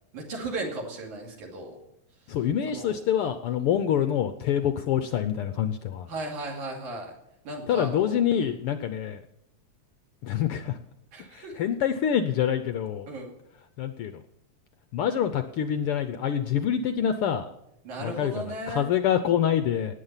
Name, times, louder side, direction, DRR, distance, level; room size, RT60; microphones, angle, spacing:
voice 1, 0.1-1.8 2.7-3.0 6.1-7.1 7.5-8.5 11.1-11.6 13.1-13.4 17.8-18.9, right 2 dB, 75° right, 0 dB, 4.1 m, -36 dB
voice 2, 2.3-6.1 7.7-9.2 10.2-10.8 11.3-13.1 13.8-14.1 14.9-17.4 18.0-19.9, left 9 dB, 80° left, 9 dB, 1.2 m, -26 dB
18.5 x 8.9 x 5.7 m, 0.80 s
omnidirectional pair, 3.5 m